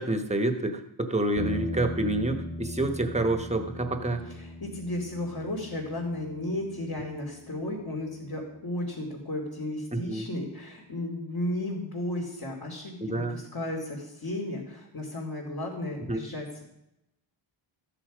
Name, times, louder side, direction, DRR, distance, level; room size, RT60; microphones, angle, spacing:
voice 1, 0.0-4.3 9.9-10.3 13.0-13.4 16.1-16.2, right 2 dB, 15° right, 7 dB, 1.2 m, -28 dB
sound 1, 1.4-9.7, left 1 dB, 25° left, 1.5 m, -41 dB
voice 2, 4.2-16.6, left 1 dB, 45° left, -4 dB, 2.9 m, -34 dB
14.0 x 10.0 x 5.1 m, 0.86 s
wide cardioid pair, 145°, 49 cm